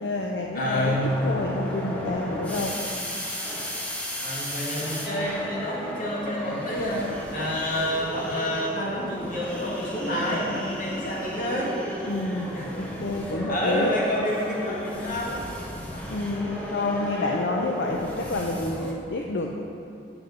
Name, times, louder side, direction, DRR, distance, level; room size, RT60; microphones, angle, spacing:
voice 1, 0.0-3.0 12.1-12.5 12.8-13.9 16.1-19.5, left 2 dB, 75° left, 0 dB, 0.6 m, -29 dB
voice 2, 0.5-1.2 4.2-11.8 12.5-12.7 13.2-15.5, left 1 dB, 50° left, -5 dB, 1.9 m, -28 dB
sound 1, 0.7-18.9, equal, 10° left, 1.0 m, -34 dB
7.6 x 6.0 x 5.4 m, 2.6 s
head